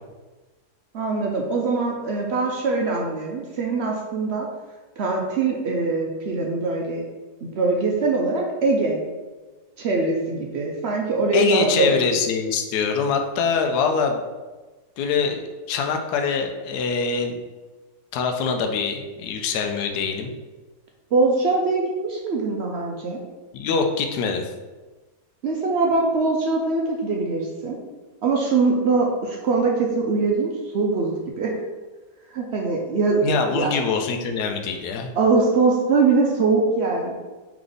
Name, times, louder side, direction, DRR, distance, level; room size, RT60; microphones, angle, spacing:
voice 1, 0.9-4.5 5.0-7.1 7.4-9.0 9.8-12.0 21.1-23.2 25.4-27.8 28.2-31.5 32.3-33.2 33.5-33.7 35.1-37.1, right 3 dB, 65° right, 0 dB, 0.6 m, -22 dB
voice 2, 11.3-14.2 15.0-17.4 18.1-20.3 23.5-24.5 33.2-35.1, left 5 dB, 80° left, 4 dB, 1.1 m, -24 dB
3.8 x 3.5 x 3.3 m, 1.3 s
omnidirectional pair, 1.7 m